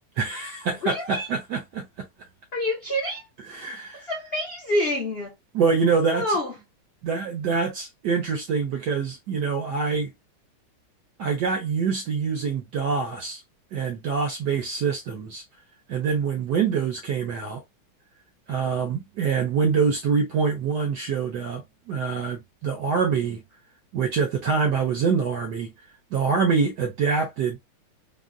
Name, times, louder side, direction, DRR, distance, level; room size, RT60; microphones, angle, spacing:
voice 1, 0.2-2.1 3.5-4.1 5.5-6.4 7.0-10.1 11.2-13.4 13.7-15.4 15.9-17.6 18.5-23.4 23.9-25.7 26.1-27.6, right 5 dB, 70° right, 1.0 m, -25 dB
voice 2, 0.8-1.3 2.5-3.3 3.9-5.3 6.1-6.5, left 1 dB, 70° left, 0.5 m, -27 dB
3.6 x 2.0 x 2.4 m
omnidirectional pair, 2.4 m